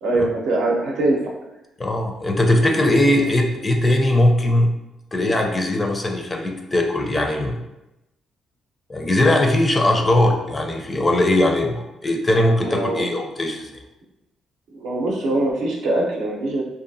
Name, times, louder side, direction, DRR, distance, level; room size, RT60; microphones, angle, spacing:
voice 1, 0.0-1.2 3.2-3.3 12.6-13.1 14.7-16.6, right 2 dB, 85° right, -2 dB, 0.6 m, -22 dB
voice 2, 1.8-4.7 5.1-7.6 8.9-13.7, left 1 dB, 25° left, 2 dB, 0.4 m, -19 dB
2.6 x 2.3 x 2.6 m, 0.94 s
cardioid pair, 90°, 0 cm